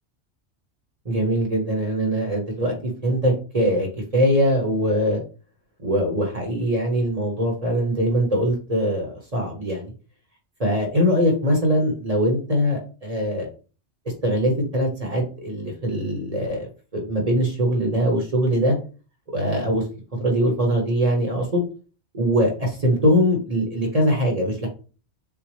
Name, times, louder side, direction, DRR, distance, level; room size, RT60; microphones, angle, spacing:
voice 1, 1.0-2.7 3.0-3.9 4.1-5.2 5.8-9.9 10.6-13.5 14.2-18.8 19.3-19.8 20.2-21.6 22.1-24.7, equal, 35° right, 0 dB, 1.2 m, -22 dB
7.0 x 2.3 x 3.2 m, 0.37 s
omnidirectional pair, 1.2 m